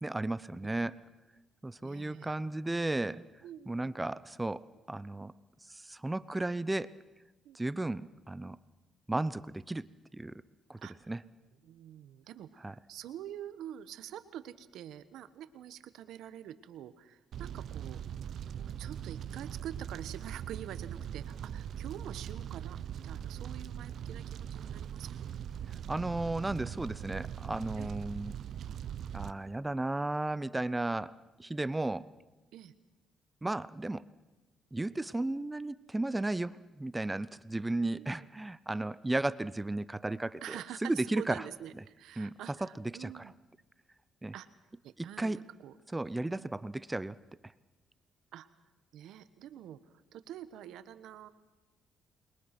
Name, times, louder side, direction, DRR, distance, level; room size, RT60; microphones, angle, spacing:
voice 1, 0.0-1.0 1.6-3.2 3.7-4.6 4.9-5.3 5.7-6.9 7.5-8.6 9.1-9.8 10.1-10.3 10.7-10.8 11.1-11.2 12.6-12.7 25.9-28.3 29.1-31.1 31.4-32.0 33.4-34.0 34.7-41.4 42.2-42.7 43.0-43.2 44.2-44.3 45.0-45.4 45.9-47.2, right 2 dB, 15° right, 17 dB, 0.7 m, -34 dB
voice 2, 1.8-2.3 3.4-3.9 7.4-7.6 10.8-10.9 11.6-18.0 18.6-25.3 27.8-28.0 32.5-32.7 37.9-38.3 40.4-43.3 44.3-44.5 44.8-45.7 46.3-46.5 48.3-48.5 48.9-49.8 50.1-51.3, right 11 dB, 85° right, 13 dB, 1.3 m, -46 dB
Fire, 17.3-29.3, right 9 dB, 65° right, 0.8 m, -41 dB
28.5 x 22.0 x 6.1 m, 1.1 s
cardioid pair, 90°, 0 cm